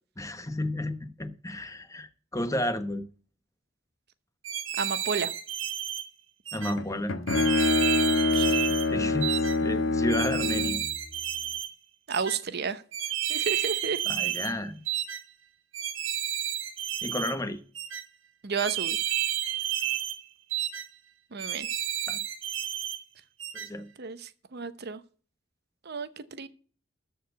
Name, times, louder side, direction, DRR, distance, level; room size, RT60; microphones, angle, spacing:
voice 1, 0.2-3.0 6.5-7.1 8.9-9.3 9.6-10.8 14.1-14.8 17.0-17.6 22.1-22.2 23.6-23.9, left 1 dB, 15° left, 1.0 m, -32 dB
sound 1, 4.4-6.0 6.5-6.7 7.3-8.9 9.2-9.6 10.1-11.7 12.1-12.4 12.9-14.5 14.9-15.2 15.7-17.3 17.8-18.0 18.6-20.2 20.5-20.9 21.4-23.0 23.4-23.7, right 11 dB, 80° right, 1.5 m, -31 dB
voice 2, 4.8-5.3 8.3-8.7 12.1-12.8 13.3-14.0 18.4-19.0 21.3-21.7 24.0-25.0 25.8-26.5, right 5 dB, 55° right, 0.8 m, -32 dB
Bowed string instrument, 6.8-10.9, left 3 dB, 75° left, 1.2 m, -25 dB
13.5 x 4.8 x 7.9 m
head